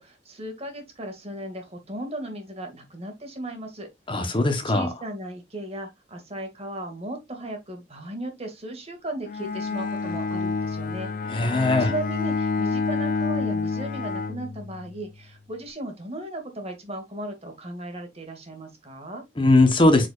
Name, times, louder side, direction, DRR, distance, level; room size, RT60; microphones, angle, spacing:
voice 1, 0.0-3.9 4.2-4.4 4.7-11.1 11.8-19.2, right 1 dB, 35° right, 2.3 m, -36 dB
voice 2, 4.1-4.9 11.3-11.9 19.4-20.1, left 2 dB, 30° left, 1.2 m, -19 dB
Bowed string instrument, 9.2-15.0, left 4 dB, 50° left, 0.5 m, -28 dB
9.0 x 4.9 x 2.5 m
head